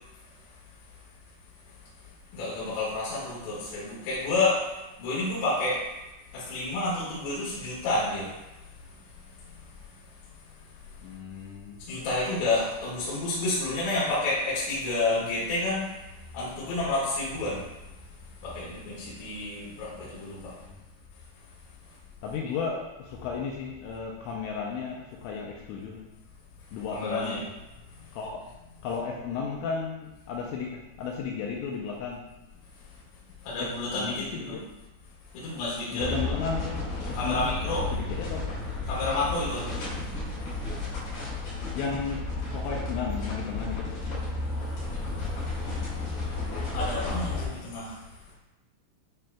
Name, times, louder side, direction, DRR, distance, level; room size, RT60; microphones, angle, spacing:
voice 1, 2.3-4.6 5.0-5.8 6.3-8.3 11.9-15.9 16.3-17.6 18.4-20.5 26.9-27.4 33.5-34.6 35.3-36.3 37.1-37.8 38.9-39.6 46.7-47.9, left 2 dB, 65° left, -9 dB, 3.7 m, -29 dB
voice 2, 11.0-11.8 20.5-20.8 22.2-26.1 26.7-27.4 28.1-28.4 28.8-32.2 33.6-34.7 35.9-37.5 37.9-38.5 41.7-44.2, left 5 dB, 80° left, -1 dB, 2.8 m, -34 dB
sound 1, 36.0-47.4, left 3 dB, 45° left, 2.9 m, -33 dB
10.5 x 4.3 x 2.3 m, 1.0 s
omnidirectional pair, 5.6 m